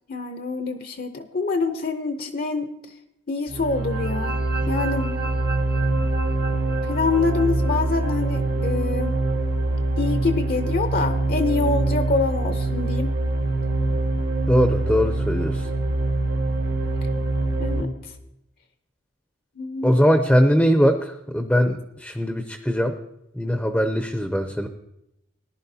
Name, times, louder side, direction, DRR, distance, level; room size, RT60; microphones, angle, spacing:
voice 1, 0.1-2.7 3.3-4.4 4.7-5.3 6.8-9.1 10.0-13.1 17.6-18.1 19.6-20.0, left 4 dB, 50° left, 7 dB, 0.6 m, -26 dB
sound 1, 3.5-17.8, right 2 dB, 60° right, 1.2 m, -24 dB
voice 2, 14.5-15.7 19.8-23.0 23.3-24.7, equal, 5° left, 6 dB, 0.5 m, -21 dB
18.5 x 11.0 x 2.8 m, 0.86 s
head